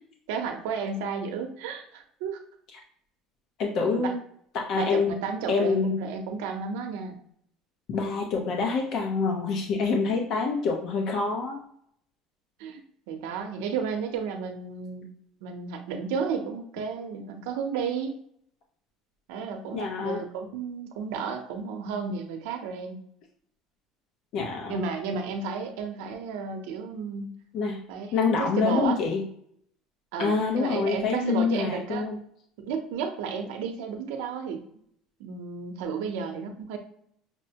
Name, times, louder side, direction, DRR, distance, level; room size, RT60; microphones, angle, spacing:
voice 1, 0.3-2.4 3.9-4.1 4.7-7.2 12.6-15.1 15.4-18.2 19.3-23.0 24.7-27.3 27.9-29.0 30.1-32.1 32.6-34.6 35.2-36.8, right 6 dB, 85° right, 4 dB, 0.7 m, -32 dB
voice 2, 3.6-4.2 4.5-5.2 5.5-6.0 7.9-11.6 19.7-20.2 24.3-24.9 27.5-27.8 28.1-29.3 30.2-32.2, left 4 dB, 55° left, 1 dB, 0.7 m, -26 dB
5.9 x 2.1 x 2.8 m, 0.67 s
cardioid pair, 135°, 0 cm